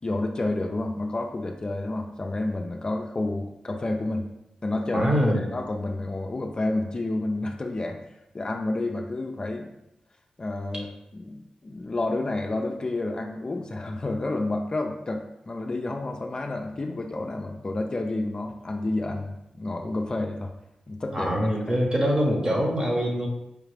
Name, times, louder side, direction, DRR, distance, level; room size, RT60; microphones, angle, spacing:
voice 1, 0.0-4.3 4.6-5.1 5.4-8.0 8.3-9.7 10.4-20.5 20.9-21.3 21.7-21.8, left 2 dB, 35° left, 3 dB, 0.4 m, -30 dB
voice 2, 4.9-5.5 21.1-23.3, equal, 30° right, -1 dB, 1.0 m, -24 dB
4.9 x 2.4 x 3.2 m, 0.85 s
cardioid pair, 80°, 2 cm